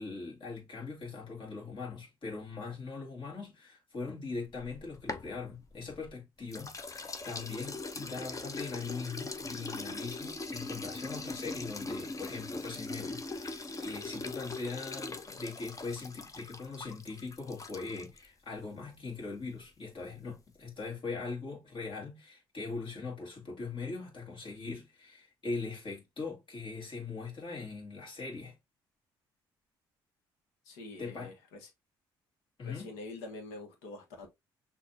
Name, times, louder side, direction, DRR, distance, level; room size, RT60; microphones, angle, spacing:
voice 1, 0.0-28.6 31.0-31.3 32.6-32.9, left 4 dB, 45° left, 2.2 m, -41 dB
sound 1, 4.5-6.1 6.5-18.3, left 3 dB, 30° left, 0.8 m, -41 dB
voice 2, 30.6-31.7 32.6-34.3, left 2 dB, 80° left, 1.3 m, -45 dB
6.2 x 2.7 x 2.8 m
hypercardioid pair, 50°, 12 cm